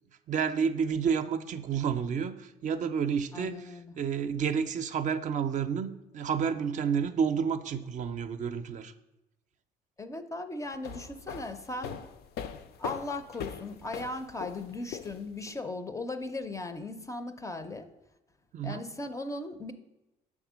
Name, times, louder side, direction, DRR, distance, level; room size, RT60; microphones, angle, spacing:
voice 1, 0.3-8.9 18.5-18.8, right 7 dB, 45° right, 9 dB, 0.5 m, -30 dB
voice 2, 3.3-3.9 10.0-12.0 12.8-17.9 18.6-19.7, left 2 dB, 20° left, 10 dB, 0.5 m, -37 dB
sound 1, 10.7-15.5, left 7 dB, 70° left, 0.5 m, -41 dB
6.5 x 3.6 x 6.1 m, 0.96 s
cardioid pair, 110°, 17 cm